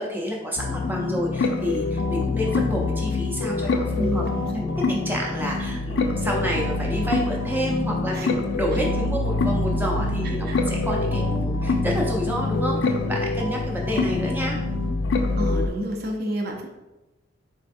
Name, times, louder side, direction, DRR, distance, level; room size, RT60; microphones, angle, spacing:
voice 1, 0.0-4.2 4.5-14.6, equal, 10° right, -2 dB, 0.6 m, -29 dB
sound 1, 0.6-15.7, left 3 dB, 65° left, 0.3 m, -25 dB
voice 2, 4.0-4.6 8.1-8.4 10.5-10.6 15.4-16.7, right 1 dB, 50° right, 2 dB, 0.6 m, -29 dB
4.3 x 3.4 x 2.6 m, 1.0 s
head